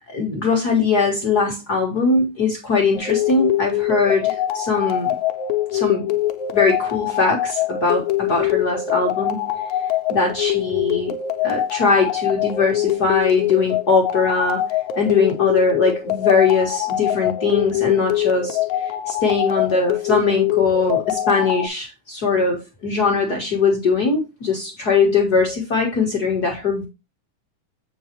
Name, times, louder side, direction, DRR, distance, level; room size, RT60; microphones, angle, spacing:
voice 1, 0.1-5.2 5.7-6.1 6.5-9.5 10.1-11.1 11.4-14.7 15.0-26.9, left 4 dB, 50° left, 1.2 m, -20 dB
sound 1, 3.0-21.7, left 12 dB, 75° left, 1.9 m, -23 dB
7.5 x 5.5 x 2.9 m
omnidirectional pair, 3.7 m